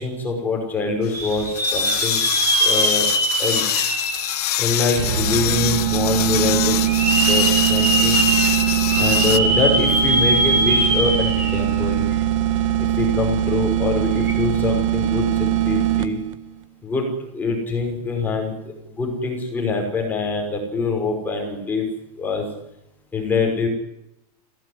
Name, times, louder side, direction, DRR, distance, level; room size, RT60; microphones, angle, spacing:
voice 1, 0.0-2.2 2.6-3.1 3.4-3.6 4.6-7.0 7.3-8.2 9.0-12.0 12.8-16.2 16.8-18.5 19.0-21.9 22.2-22.5 23.1-23.7, left 4 dB, 10° left, 1 dB, 5.5 m, -24 dB
sound 1, 1.0-9.4, left 14 dB, 70° left, 1.1 m, -25 dB
sound 2, 1.1-5.1 5.6-5.7 6.8-11.7 12.1-12.2 14.2-14.3, right 2 dB, 10° right, 4.3 m, -22 dB
sound 3, 5.0-16.4, right 12 dB, 50° right, 1.5 m, -21 dB
21.5 x 17.0 x 9.7 m, 0.82 s
supercardioid pair, 180°, 20 cm